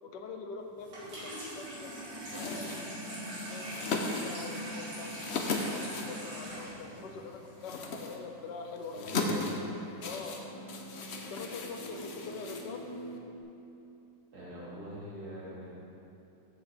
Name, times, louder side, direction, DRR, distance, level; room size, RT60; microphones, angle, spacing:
voice 1, 0.0-1.9 2.3-2.7 3.1-9.2 10.0-10.4 11.1-12.9, left 4 dB, 85° left, 4 dB, 1.5 m, -44 dB
Water tap faucet / Sink (filling or washing), 0.8-7.8, equal, 85° right, 3.4 m, -41 dB
sound 1, 2.3-13.2, left 3 dB, 50° left, 0.8 m, -38 dB
voice 2, 8.9-9.5 14.3-15.8, equal, 60° right, -7 dB, 2.8 m, -43 dB
sound 2, 9.4-13.4, right 1 dB, 20° left, 0.7 m, -47 dB
13.0 x 7.5 x 3.5 m, 2.8 s
omnidirectional pair, 1.9 m